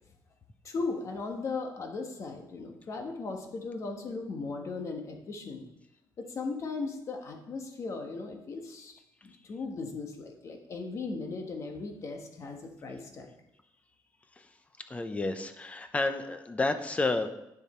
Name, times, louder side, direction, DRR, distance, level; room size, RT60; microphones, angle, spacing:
voice 1, 0.6-5.6 6.2-8.9 9.2-13.3, left 3 dB, 40° left, 3 dB, 1.3 m, -37 dB
voice 2, 14.8-17.3, left 2 dB, 15° left, 9 dB, 0.7 m, -31 dB
9.4 x 7.0 x 4.4 m, 0.87 s
cardioid pair, 155°, 8 cm